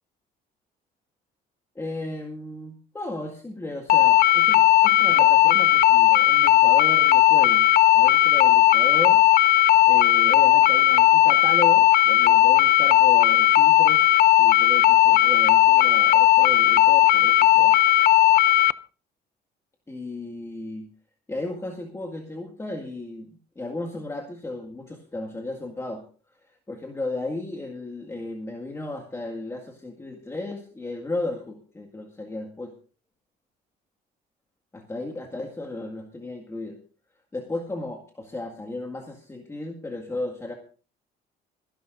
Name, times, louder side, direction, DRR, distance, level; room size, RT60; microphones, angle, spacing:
voice 1, 1.8-7.7 7.9-9.2 9.9-14.0 14.4-17.7 19.9-20.9 21.3-23.3 23.6-26.0 26.7-32.7 34.7-36.8 37.3-40.5, left 2 dB, 15° left, 2 dB, 1.9 m, -34 dB
sound 1, 3.9-18.7, left 13 dB, 65° left, 0.5 m, -17 dB
26.5 x 11.5 x 2.6 m, 0.37 s
cardioid pair, 110°, 17 cm